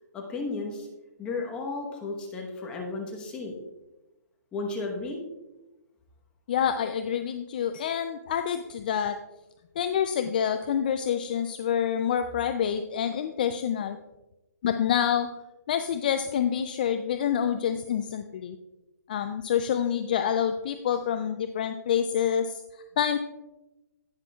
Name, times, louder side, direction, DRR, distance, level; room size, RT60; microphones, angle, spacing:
voice 1, 0.1-0.9 1.2-3.5 4.5-5.2, left 3 dB, 10° left, 0 dB, 1.0 m, -33 dB
voice 2, 6.5-9.2 9.8-14.0 14.6-15.3 15.7-18.6 19.1-22.6 23.0-23.2, left 8 dB, 30° left, 8 dB, 0.3 m, -27 dB
18.0 x 6.0 x 2.3 m, 1.0 s
hypercardioid pair, 165°, 9 cm